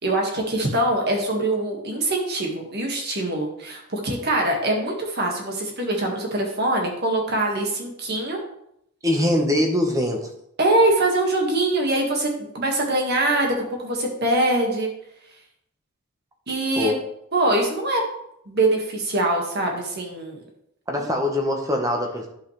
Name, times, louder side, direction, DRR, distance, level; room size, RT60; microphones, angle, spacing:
voice 1, 0.0-8.4 10.6-14.9 16.5-17.0 17.3-18.0 18.5-20.4, right 2 dB, 50° right, 0 dB, 1.8 m, -23 dB
voice 2, 9.0-10.3 16.8-17.0 20.9-22.3, left 1 dB, 15° right, 2 dB, 1.3 m, -22 dB
11.5 x 5.7 x 3.3 m, 0.75 s
head